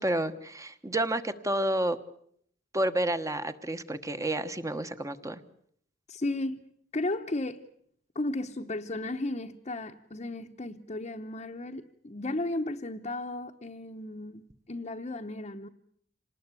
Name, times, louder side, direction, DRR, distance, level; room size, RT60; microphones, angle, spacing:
voice 1, 0.0-2.0 2.7-5.4, right 1 dB, 15° right, 1.2 m, -30 dB
voice 2, 6.1-6.6 6.9-7.7 8.1-15.7, left 2 dB, 35° left, 1.0 m, -34 dB
26.5 x 19.5 x 8.3 m
head